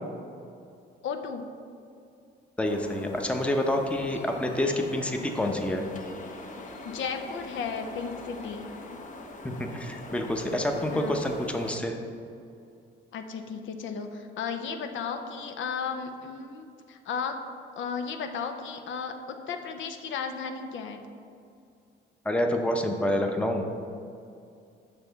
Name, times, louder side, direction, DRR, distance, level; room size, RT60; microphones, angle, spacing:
voice 1, 1.0-1.5 6.8-8.7 10.9-11.2 13.1-17.4 17.8-21.1, left 6 dB, 75° left, 6 dB, 0.6 m, -34 dB
sound 1, 2.6-11.8, left 2 dB, 40° left, 0.8 m, -43 dB
voice 2, 2.6-5.8 9.4-12.0 22.3-23.6, left 1 dB, 5° left, 3 dB, 0.7 m, -28 dB
7.0 x 5.5 x 4.0 m, 2.4 s
cardioid pair, 90°, 20 cm